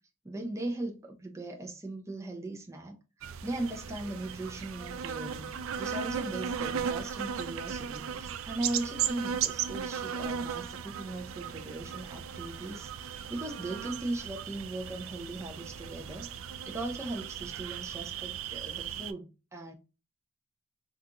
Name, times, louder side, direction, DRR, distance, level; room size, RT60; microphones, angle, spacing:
voice 1, 0.2-16.3 16.6-19.7, right 2 dB, 15° right, 0.5 m, -39 dB
sound 1, 3.2-19.1, right 8 dB, 70° right, 0.3 m, -36 dB
3.7 x 2.4 x 2.7 m
head